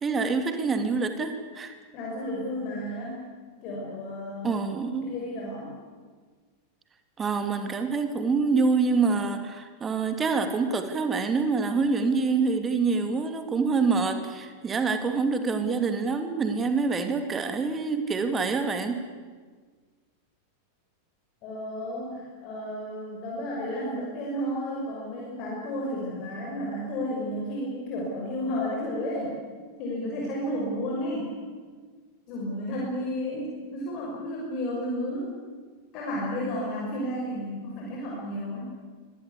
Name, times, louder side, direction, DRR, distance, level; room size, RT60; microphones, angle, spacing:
voice 1, 0.0-1.7 4.4-5.1 7.2-19.0, right 4 dB, 20° right, 7 dB, 2.8 m, -26 dB
voice 2, 1.9-3.3 3.6-4.6 5.0-5.7 21.4-29.3 29.8-31.3 32.3-35.3 35.9-38.6, equal, 40° left, -3 dB, 6.1 m, -32 dB
24.0 x 19.0 x 8.4 m, 1.5 s
figure-of-eight pair, 90°, 0 cm